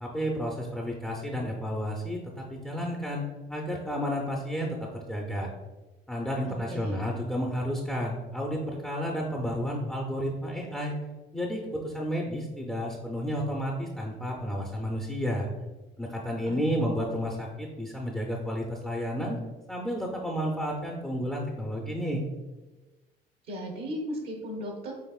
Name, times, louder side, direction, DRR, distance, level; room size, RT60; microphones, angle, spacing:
voice 1, 0.0-3.2 3.5-5.5 6.1-11.0 11.3-15.5 16.0-19.4 19.7-22.2, equal, 5° left, -1 dB, 0.6 m, -31 dB
voice 2, 6.5-7.0 16.5-17.0 23.5-24.9, equal, 70° right, 0 dB, 1.0 m, -37 dB
5.7 x 3.5 x 2.4 m, 1.2 s
cardioid pair, 110°, 17 cm